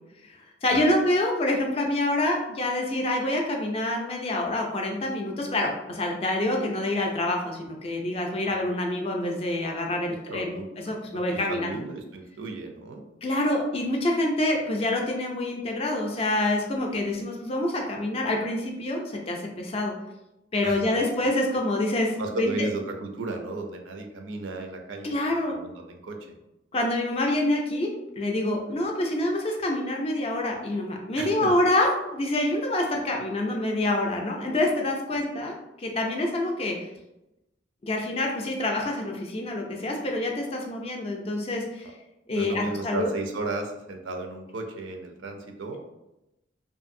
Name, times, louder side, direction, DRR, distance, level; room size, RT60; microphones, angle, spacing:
voice 1, 0.6-10.6 10.8-11.8 13.2-19.9 20.5-22.7 25.0-25.5 26.7-27.9 28.2-36.9 37.8-41.9 42.3-43.1, left 1 dB, 30° left, 1 dB, 0.4 m, -26 dB
voice 2, 10.3-10.7 11.3-13.0 20.6-21.0 22.2-25.1 25.5-26.2 31.2-31.5 42.3-45.8, right 2 dB, 80° right, 3 dB, 0.4 m, -34 dB
2.6 x 2.5 x 2.5 m, 0.93 s
head